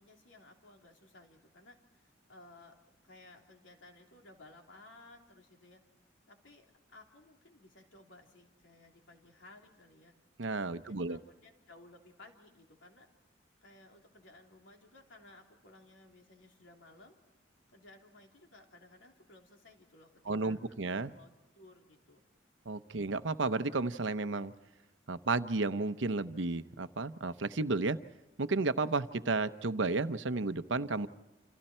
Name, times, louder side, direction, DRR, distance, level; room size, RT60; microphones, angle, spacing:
voice 1, 0.0-2.8 3.0-5.8 6.3-10.1 10.7-13.1 13.6-17.2 17.7-20.6 21.1-22.2 22.9-23.0, left 2 dB, 85° left, 2 dB, 3.5 m, -58 dB
voice 2, 10.4-11.2 20.3-21.1 22.7-24.5 25.1-28.0 28.4-31.1, right 3 dB, 80° right, 12 dB, 0.8 m, -32 dB
28.5 x 27.5 x 4.5 m, 1.1 s
head